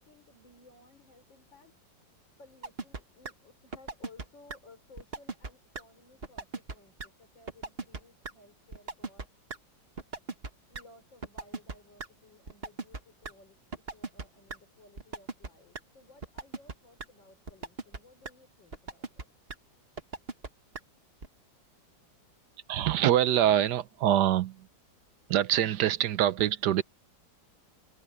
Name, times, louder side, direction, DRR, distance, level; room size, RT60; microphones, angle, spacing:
voice 1, 0.0-1.7 2.4-9.3 10.7-13.6 13.9-19.3, left 3 dB, 80° left, 5.1 m, -58 dB
sound 1, 2.6-3.0 3.3-3.4 3.7-4.2 4.5-4.6 5.0-5.5 5.8-5.9 6.2-6.7 7.0-7.1 7.5-8.0 8.2-8.3 8.7-9.3 9.5-9.6 10.0-10.5 10.7-10.8 11.2-12.1 12.5-13.3 13.7-14.2 14.5-14.6 15.0-15.5 15.8-15.9 16.2-16.7 17.0-17.1 17.5-18.0 18.3-18.4 18.7-19.2 19.5-19.6 20.0-20.5 20.8-20.9 21.2-21.3, right 3 dB, 35° right, 1.8 m, -37 dB
voice 2, 22.7-24.7 25.3-26.8, right 11 dB, 70° right, 1.3 m, -25 dB
omnidirectional pair, 2.0 m